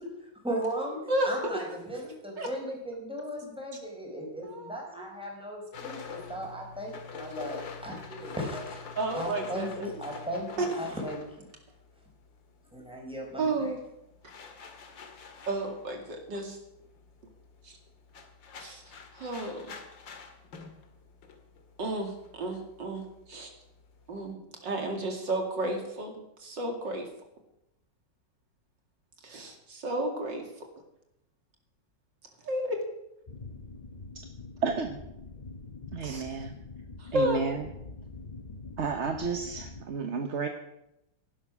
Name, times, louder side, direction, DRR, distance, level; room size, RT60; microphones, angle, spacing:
voice 1, 0.4-11.2 12.7-13.5, equal, 5° right, -1 dB, 4.8 m, -37 dB
voice 2, 1.1-1.6 1.9-2.0 2.4-2.5 4.4-5.1 9.0-9.9 10.6-10.7 13.4-13.8 15.5-16.6 17.6-17.8 18.6-18.8 19.1-19.7 21.8-23.5 24.1-27.1 29.2-30.5 32.4-32.8 36.0-36.3 37.0-37.4, right 1 dB, 70° right, 3 dB, 3.1 m, -32 dB
sound 1, 5.7-12.4 12.7-24.3, left 5 dB, 80° left, 2.4 m, -46 dB
sound 2, 33.3-39.8, left 3 dB, 30° left, 1.0 m, -45 dB
voice 3, 34.6-35.0 35.9-36.5 37.1-37.6 38.8-40.5, right 5 dB, 45° right, 5 dB, 1.2 m, -31 dB
17.0 x 11.5 x 6.2 m, 0.85 s
omnidirectional pair, 2.0 m